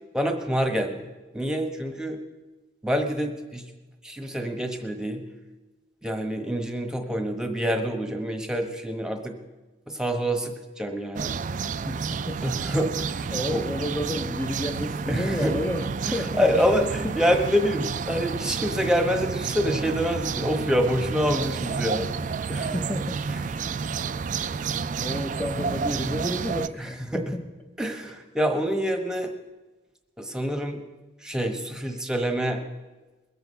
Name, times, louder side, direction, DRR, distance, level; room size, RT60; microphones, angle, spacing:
voice 1, 0.1-1.1 1.3-2.2 2.8-3.6 4.0-5.2 6.0-9.3 9.9-11.4 12.4-13.6 15.1-15.5 16.4-22.6 24.6-24.7 26.8-27.2 27.8-29.3 30.2-30.8 31.2-32.6, equal, 5° right, 4 dB, 1.2 m, -26 dB
sound 1, 11.1-26.7, right 5 dB, 45° right, 0.4 m, -30 dB
voice 2, 11.9-12.4 13.3-16.9 22.5-23.9 25.0-27.5, left 1 dB, 10° left, 0 dB, 0.7 m, -31 dB
21.0 x 8.1 x 5.5 m, 1.2 s
head